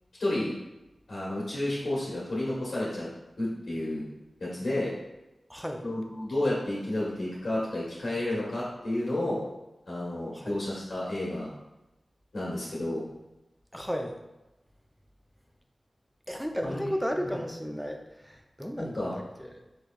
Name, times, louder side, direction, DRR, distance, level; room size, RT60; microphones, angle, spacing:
voice 1, 0.2-0.6 1.1-3.1 3.4-4.0 4.4-4.9 5.8-9.4 9.9-11.5 12.3-13.0 16.6-17.1 18.8-19.1, left 1 dB, 75° left, -8 dB, 1.2 m, -31 dB
voice 2, 5.5-5.8 10.3-10.5 13.7-14.2 16.3-19.5, equal, ahead, 3 dB, 0.5 m, -34 dB
4.7 x 3.1 x 2.4 m, 0.99 s
cardioid pair, 45°, 0 cm